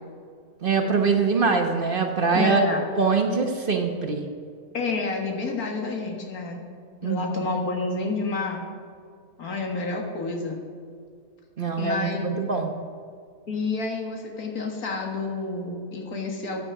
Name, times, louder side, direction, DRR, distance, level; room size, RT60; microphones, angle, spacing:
voice 1, 0.6-2.7 3.0-4.3 7.0-7.5 11.6-12.8, right 4 dB, 40° right, 3 dB, 1.2 m, -23 dB
voice 2, 2.3-2.8 4.7-6.6 7.0-8.6 9.4-10.6 11.8-12.4 13.5-16.6, left 3 dB, 90° left, 1 dB, 2.2 m, -29 dB
14.5 x 8.9 x 4.8 m, 2.2 s
omnidirectional pair, 1.5 m